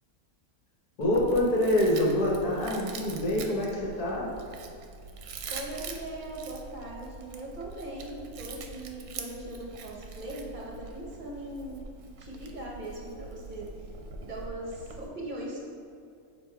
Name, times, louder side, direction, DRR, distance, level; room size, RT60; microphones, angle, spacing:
voice 1, 1.0-4.3, left 1 dB, 70° left, -3 dB, 1.5 m, -26 dB
Chewing mastication, 1.0-15.1, right 4 dB, 75° right, 1.1 m, -43 dB
voice 2, 5.5-11.9 12.2-13.9 14.2-15.6, right 1 dB, 35° right, -3 dB, 1.1 m, -40 dB
6.9 x 3.1 x 4.5 m, 2.5 s
omnidirectional pair, 1.7 m